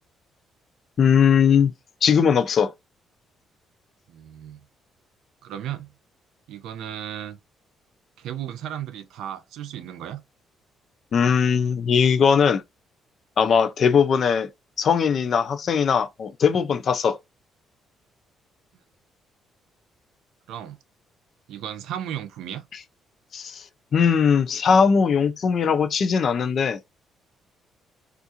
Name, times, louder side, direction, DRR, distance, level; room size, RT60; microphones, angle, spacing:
voice 1, 1.0-1.7 2.0-2.7 11.1-12.6 13.4-14.5 14.8-17.2 23.3-23.6 23.9-26.9, left 6 dB, 45° left, 0.4 m, -20 dB
voice 2, 4.1-4.6 5.4-5.9 6.5-7.4 8.2-10.2 20.5-20.8 21.5-22.6, right 10 dB, 90° right, 0.6 m, -34 dB
3.6 x 2.5 x 2.8 m
cardioid pair, 145°, 0 cm